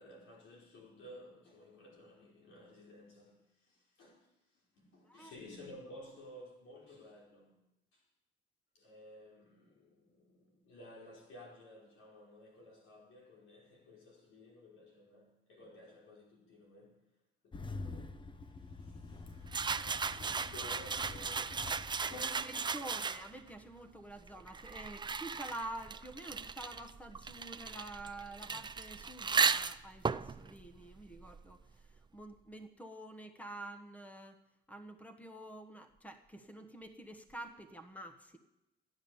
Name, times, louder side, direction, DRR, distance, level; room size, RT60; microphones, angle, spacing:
voice 1, 0.0-7.6 7.9-8.0 8.7-17.0 17.4-19.6 20.0-23.1, left 1 dB, 80° left, 5.3 m, -55 dB
Engine starting, 17.5-23.1, left 3 dB, 25° left, 0.8 m, -47 dB
sound 1, 19.5-23.5 24.3-31.7, right 5 dB, 20° right, 0.5 m, -36 dB
voice 2, 22.1-34.4 34.7-38.4, right 1 dB, 5° left, 1.1 m, -48 dB
15.0 x 10.0 x 7.1 m
cardioid pair, 90°, 20 cm